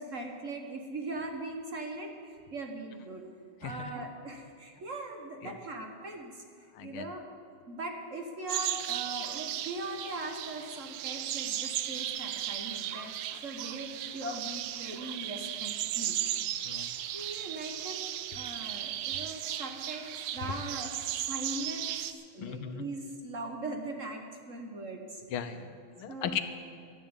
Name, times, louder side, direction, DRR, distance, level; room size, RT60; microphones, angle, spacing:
voice 1, 0.0-3.3 3.6-6.4 6.8-7.2 7.7-13.1 13.4-16.7 17.1-18.0 18.3-20.9 21.2-21.9 22.3-25.2 26.1-26.4, right 2 dB, 45° right, 3 dB, 1.2 m, -40 dB
voice 2, 3.6-4.0 5.4-5.6 6.7-7.1 13.3-13.4 16.6-16.9 22.4-22.8 25.3-26.4, left 9 dB, 85° left, 10 dB, 1.7 m, -37 dB
sound 1, 8.5-22.1, right 12 dB, 90° right, 1.5 m, -36 dB
12.0 x 10.5 x 8.0 m, 2.3 s
omnidirectional pair, 2.3 m